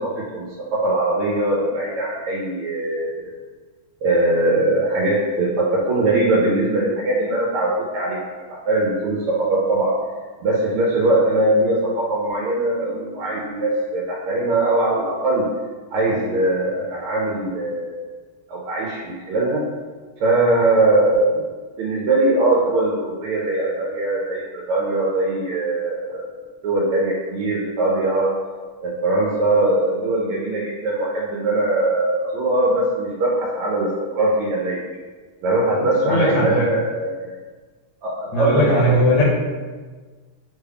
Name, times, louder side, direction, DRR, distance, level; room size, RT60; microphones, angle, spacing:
voice 1, 0.0-3.3 4.0-8.2 8.5-10.0 10.4-15.5 15.9-17.9 18.5-19.6 20.2-21.4 21.8-26.3 26.6-28.3 28.8-34.8 35.4-37.3 38.0-39.0, right 2 dB, 80° right, -4 dB, 1.5 m, -21 dB
voice 2, 36.0-36.7 38.3-39.2, equal, 80° left, -5 dB, 1.5 m, -18 dB
3.7 x 2.3 x 3.3 m, 1.4 s
omnidirectional pair, 2.4 m